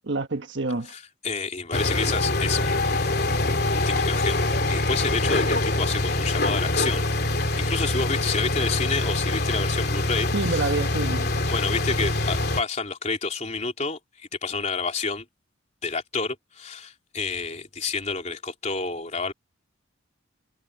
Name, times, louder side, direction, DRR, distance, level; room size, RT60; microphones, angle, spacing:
voice 1, 0.1-0.9 10.3-11.3, right 3 dB, 60° right, 1.4 m, -27 dB
voice 2, 0.9-3.2 3.7-7.1 7.6-10.7 11.5-15.2 15.8-19.3, left 4 dB, 35° left, 3.8 m, -29 dB
sound 1, 1.7-12.6, left 2 dB, 50° left, 3.1 m, -24 dB
head